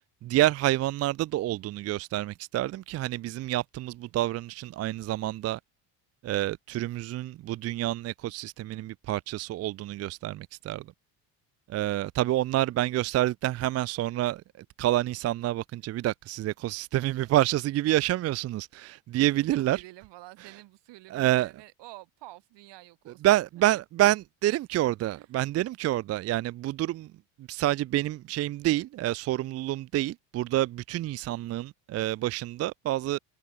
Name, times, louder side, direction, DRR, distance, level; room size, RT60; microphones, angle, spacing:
voice 1, 0.2-5.6 6.2-10.9 11.7-19.8 21.1-21.5 23.2-27.1 27.5-33.2, right 15 dB, 35° right, 0.4 m, -28 dB
voice 2, 12.5-13.1 19.3-23.4 25.1-25.3, right 18 dB, 70° right, 6.8 m, -49 dB
cardioid pair, 155°, 44 cm